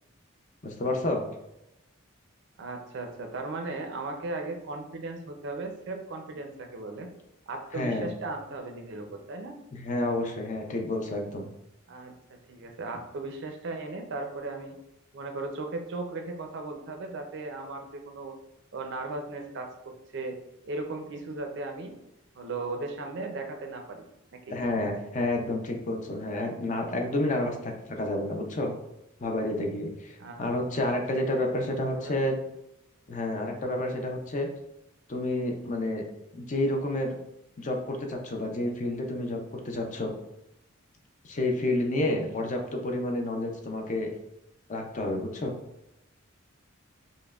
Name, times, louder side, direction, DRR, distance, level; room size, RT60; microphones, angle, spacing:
voice 1, 0.6-1.2 7.7-8.1 9.7-11.5 24.5-28.7 29.2-32.4 33.1-34.5 35.1-36.0 36.3-37.2 37.6-40.1 41.2-44.1 44.7-45.5, left 1 dB, 35° left, 2 dB, 0.5 m, -30 dB
voice 2, 2.6-7.1 7.5-9.6 11.9-12.2 12.5-14.8 15.1-18.4 18.7-20.4 20.7-22.0 22.3-24.0 24.3-24.6 30.2-30.4 31.3-31.5 31.8-32.2, right 3 dB, 60° right, 4 dB, 0.5 m, -37 dB
5.2 x 2.1 x 2.4 m, 0.88 s
head